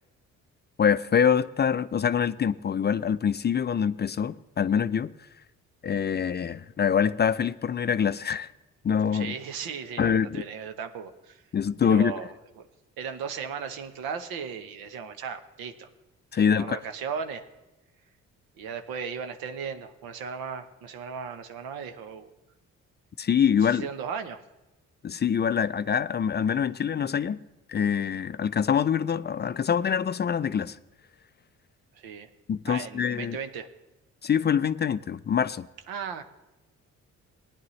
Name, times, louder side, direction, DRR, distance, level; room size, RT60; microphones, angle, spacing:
voice 1, 0.8-5.1 5.8-8.5 8.8-9.3 10.0-10.4 11.5-12.1 16.3-16.8 23.2-23.9 25.0-27.4 27.7-30.8 32.5-33.4 34.2-35.7, left 7 dB, 30° left, 0.4 m, -25 dB
voice 2, 9.1-11.4 11.9-12.7 13.0-15.9 16.6-17.5 18.6-22.3 23.6-24.4 31.9-32.3 32.6-33.7 35.9-36.2, right 6 dB, 80° right, 0.9 m, -36 dB
18.5 x 10.0 x 3.2 m
hypercardioid pair, 50°, 35 cm